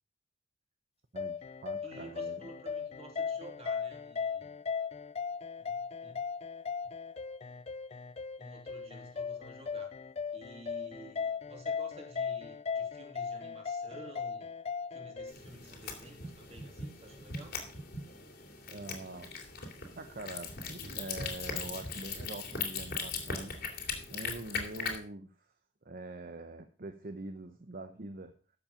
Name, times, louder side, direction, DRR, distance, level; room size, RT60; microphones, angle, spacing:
voice 1, 1.1-2.4 18.7-19.3 20.0-25.5 25.8-28.3, right 2 dB, 50° right, 8 dB, 0.9 m, -44 dB
sound 1, 1.2-15.3, left 6 dB, 35° left, 0.5 m, -38 dB
voice 2, 1.8-4.5 5.6-6.2 8.4-9.9 10.3-14.5 14.9-17.6, right 1 dB, 35° right, 1 dB, 3.3 m, -52 dB
sound 2, 15.3-25.0, left 4 dB, 55° left, 2.8 m, -40 dB
13.5 x 7.4 x 5.1 m, 0.38 s
head